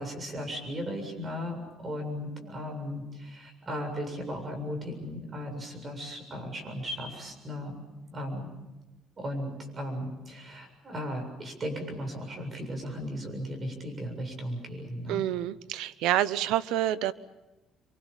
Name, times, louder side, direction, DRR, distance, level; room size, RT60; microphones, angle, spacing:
voice 1, 0.0-7.8 8.1-8.5 9.2-15.2, equal, 30° right, 4 dB, 7.4 m, -36 dB
voice 2, 15.1-17.1, right 12 dB, 90° right, 15 dB, 0.9 m, -28 dB
28.0 x 24.5 x 7.3 m, 1.0 s
cardioid pair, 125°, 0 cm